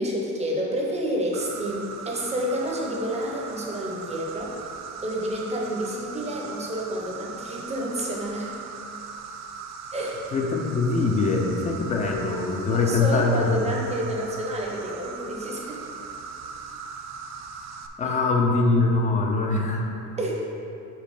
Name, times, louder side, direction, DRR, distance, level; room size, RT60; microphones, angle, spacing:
voice 1, 0.0-4.6 5.0-8.6 9.9-10.2 12.7-15.8 18.0-18.2 20.2-20.3, right 1 dB, 20° right, -2 dB, 0.7 m, -29 dB
Insect, 1.3-17.9, right 5 dB, 50° right, 0.4 m, -39 dB
voice 2, 10.3-13.7 18.0-19.9, left 3 dB, 20° left, 1 dB, 0.5 m, -23 dB
5.2 x 4.4 x 5.3 m, 2.7 s
cardioid pair, 175°, 36 cm